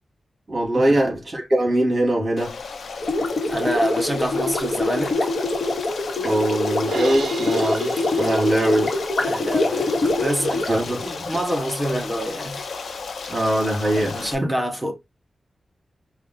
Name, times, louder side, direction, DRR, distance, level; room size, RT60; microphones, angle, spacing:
voice 1, 0.5-2.6 6.2-8.9 10.7-11.4 13.3-14.5, right 1 dB, 35° right, 2.8 m, -22 dB
Stream, 2.4-14.3, left 4 dB, 90° left, 0.7 m, -34 dB
Gurgling, 3.0-11.4, left 2 dB, 50° left, 1.1 m, -24 dB
voice 2, 3.5-5.3 9.2-10.7 11.0-12.7 14.0-14.9, right 1 dB, 10° right, 0.8 m, -27 dB
Crash cymbal, 6.9-9.1, right 5 dB, 55° right, 0.5 m, -35 dB
4.6 x 2.3 x 3.9 m
wide cardioid pair, 175°, 0 cm